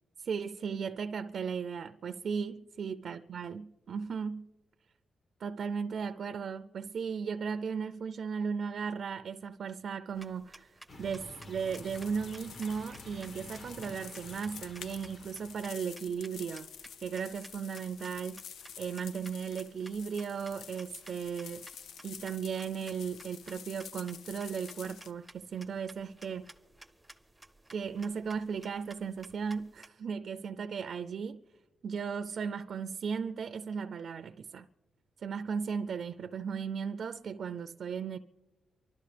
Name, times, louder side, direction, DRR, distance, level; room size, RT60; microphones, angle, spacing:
voice 1, 0.2-4.5 5.4-16.7 17.0-18.4 18.8-21.7 22.0-26.5 27.7-31.4 31.8-34.7 35.2-38.2, right 6 dB, 60° right, 0.4 m, -36 dB
sound 1, 10.1-29.9, right 1 dB, 5° right, 0.5 m, -56 dB
sound 2, 10.9-15.9, left 2 dB, 50° left, 1.2 m, -50 dB
sound 3, 11.4-25.1, left 7 dB, 85° left, 0.4 m, -49 dB
27.5 x 12.5 x 3.3 m
cardioid pair, 110°, 0 cm